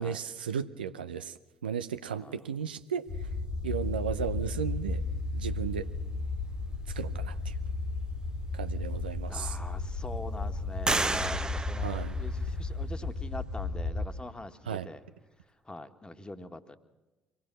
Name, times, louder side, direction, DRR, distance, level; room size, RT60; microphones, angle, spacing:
voice 1, 0.0-1.3 1.6-3.1 3.6-5.0 5.3-5.9 6.9-7.5 8.5-9.6 11.8-12.2 14.7-14.9, right 7 dB, 80° right, 11 dB, 0.7 m, -34 dB
voice 2, 2.2-2.5 9.3-15.0 15.7-16.8, left 2 dB, 15° left, 8 dB, 1.7 m, -43 dB
sound 1, 3.1-14.1, left 3 dB, 55° left, 2.3 m, -34 dB
sound 2, 8.6-8.7 9.3-9.9 10.9-12.8, right 2 dB, 15° right, 1.0 m, -33 dB
25.0 x 18.5 x 6.3 m, 1.1 s
figure-of-eight pair, 50°, 5 cm